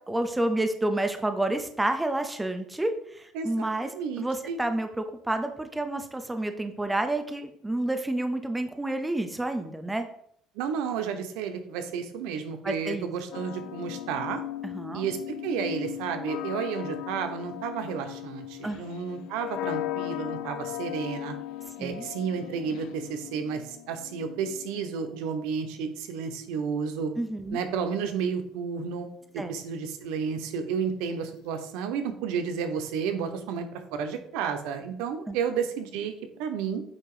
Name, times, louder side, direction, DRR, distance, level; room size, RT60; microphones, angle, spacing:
voice 1, 0.1-3.9 4.2-10.1 12.6-13.1 14.6-15.1 18.6-18.8 21.8-22.1 27.2-27.6 29.4-29.5 35.3-35.4, right 1 dB, 5° right, 7 dB, 0.6 m, -29 dB
voice 2, 3.3-4.6 10.5-14.4 14.9-21.3 21.8-27.1 27.5-29.1 29.3-36.8, right 6 dB, 90° right, 7 dB, 0.9 m, -32 dB
sound 1, 13.3-25.3 26.2-27.6, left 13 dB, 75° left, 0.4 m, -38 dB
8.8 x 2.9 x 4.9 m, 0.68 s
cardioid pair, 145°, 0 cm